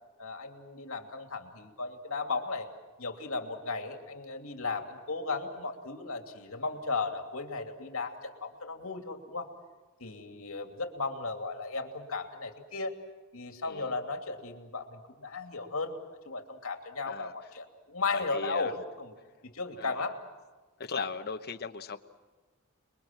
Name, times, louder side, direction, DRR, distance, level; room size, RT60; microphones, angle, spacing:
voice 1, 0.2-2.7 3.0-9.5 10.0-12.9 13.3-16.0 16.2-19.1 19.4-20.2, left 3 dB, 70° left, 5 dB, 2.8 m, -35 dB
voice 2, 13.6-14.0 17.0-17.3 18.1-18.7 19.8-20.1 20.8-22.0, left 5 dB, 45° left, 5 dB, 1.1 m, -37 dB
29.5 x 22.0 x 7.6 m, 1.3 s
head